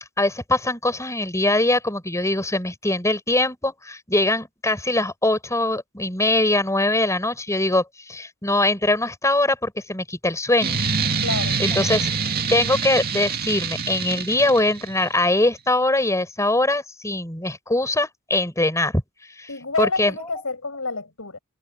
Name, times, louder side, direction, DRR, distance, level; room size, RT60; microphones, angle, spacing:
voice 1, 0.2-10.8 11.6-12.1 12.5-19.0 19.4-19.5 19.8-20.1, left 2 dB, 15° left, 7.2 m, -22 dB
sound 1, 10.6-15.1, right 5 dB, 45° right, 2.4 m, -25 dB
voice 2, 11.2-11.6 19.5-21.4, left 3 dB, 70° left, 6.9 m, -28 dB
head